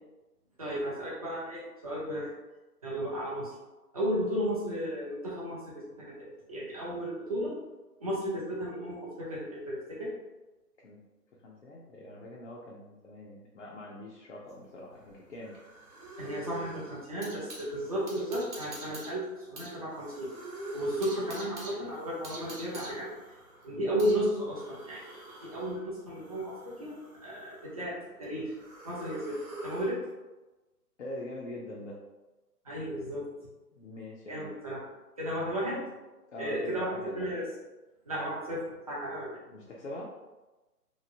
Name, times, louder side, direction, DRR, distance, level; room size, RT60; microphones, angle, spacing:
voice 1, 0.6-2.3 2.8-3.5 3.9-5.8 6.2-7.5 8.0-10.1 16.2-20.3 20.7-23.1 23.6-27.0 27.2-28.5 28.8-30.0 32.6-33.3 34.3-34.8 35.2-35.8 36.4-37.4 38.1-39.4, equal, 25° right, -7 dB, 0.5 m, -34 dB
voice 2, 11.3-15.6 23.7-23.9 31.0-32.0 33.7-34.6 36.3-37.4 39.5-40.2, left 1 dB, 50° left, -4 dB, 0.5 m, -43 dB
sound 1, 14.5-17.7 18.1-19.8 20.1-20.2 20.6-24.3, right 2 dB, 45° right, 1.0 m, -46 dB
sound 2, 15.1-15.2 15.4-17.0 17.4-19.4 19.8-21.5 21.9-23.8 24.4-25.8 26.1-27.9 28.2-29.9, right 3 dB, 65° right, 1.1 m, -46 dB
2.9 x 2.5 x 2.6 m, 1.1 s
figure-of-eight pair, 150°, 47 cm